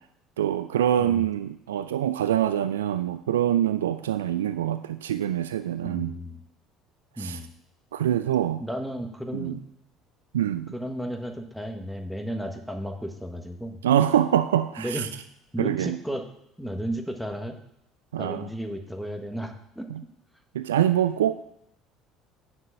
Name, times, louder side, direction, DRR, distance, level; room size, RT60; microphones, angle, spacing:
voice 1, 0.4-6.2 7.2-7.4 7.9-8.6 9.3-9.6 10.3-10.7 13.8-15.1 15.6-16.0 18.1-18.5 19.9-20.0 20.5-21.4, right 11 dB, 75° right, 12 dB, 0.3 m, -25 dB
voice 2, 5.8-6.4 7.2-7.5 8.6-9.6 10.5-13.8 14.8-15.1 15.5-16.3 16.6-17.6 18.2-19.9, equal, ahead, 5 dB, 1.4 m, -33 dB
9.6 x 5.9 x 5.6 m, 0.76 s
figure-of-eight pair, 60°, 0 cm